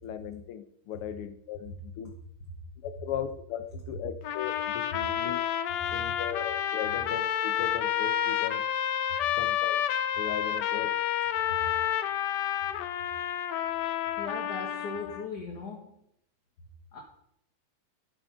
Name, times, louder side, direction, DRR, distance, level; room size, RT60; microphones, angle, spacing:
voice 1, 0.0-2.1 2.8-5.4 5.9-8.6 9.3-9.8 10.2-11.0, left 9 dB, 85° left, 11 dB, 1.8 m, -37 dB
sound 1, 4.2-15.2, left 10 dB, 70° left, 1.1 m, -30 dB
voice 2, 14.2-15.9 16.9-17.0, left 4 dB, 50° left, 0 dB, 1.9 m, -38 dB
12.5 x 5.5 x 5.6 m, 0.76 s
omnidirectional pair, 2.4 m